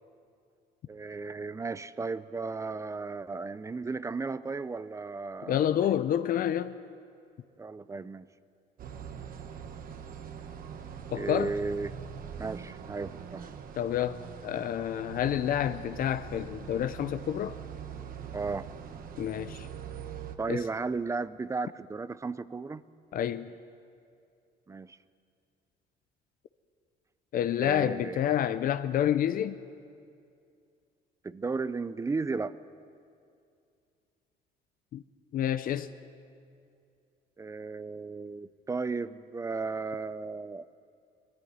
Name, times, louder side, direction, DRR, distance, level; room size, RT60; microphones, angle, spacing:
voice 1, 0.9-5.9 7.6-8.3 11.1-11.9 12.4-13.4 18.3-18.7 20.4-22.9 24.7-25.0 27.6-28.2 31.2-32.5 37.4-40.7, right 4 dB, 20° right, 0.6 m, -35 dB
voice 2, 5.5-6.7 11.1-11.5 13.7-17.6 19.2-19.7 20.5-20.6 23.1-23.5 27.3-29.6 34.9-35.0 35.3-35.9, left 10 dB, 55° left, 0.6 m, -29 dB
sound 1, 8.8-20.4, right 7 dB, 55° right, 1.2 m, -43 dB
20.0 x 14.0 x 9.5 m
cardioid pair, 110°, 17 cm